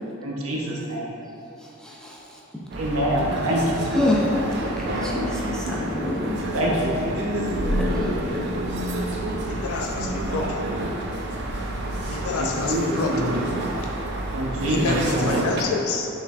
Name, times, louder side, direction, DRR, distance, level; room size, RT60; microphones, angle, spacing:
voice 1, 0.2-1.1 2.8-3.6 6.5-7.1 12.4-12.8 13.1-13.4 14.3-15.2, right 1 dB, 75° right, -3 dB, 0.8 m, -25 dB
voice 2, 1.6-2.4 3.9-6.4 7.6-8.4, left 1 dB, 5° left, -5 dB, 0.5 m, -27 dB
sound 1, 2.7-15.6, right 1 dB, 55° right, 0.5 m, -28 dB
voice 3, 9.5-10.7 12.0-13.2 14.7-16.1, left 4 dB, 80° left, 1 dB, 0.4 m, -28 dB
5.6 x 3.6 x 2.4 m, 2.9 s
head